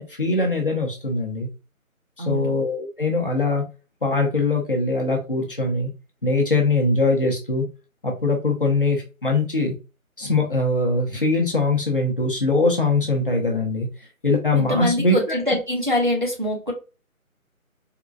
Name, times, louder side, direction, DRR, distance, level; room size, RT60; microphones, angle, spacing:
voice 1, 0.0-1.5 2.2-3.6 4.0-5.9 6.2-7.6 8.0-9.7 10.2-13.9 14.2-15.1, left 2 dB, 40° left, 0.8 m, -22 dB
voice 2, 2.2-2.6 14.5-16.7, left 1 dB, 35° right, 0.6 m, -24 dB
3.7 x 2.4 x 2.3 m
figure-of-eight pair, 175°, 43 cm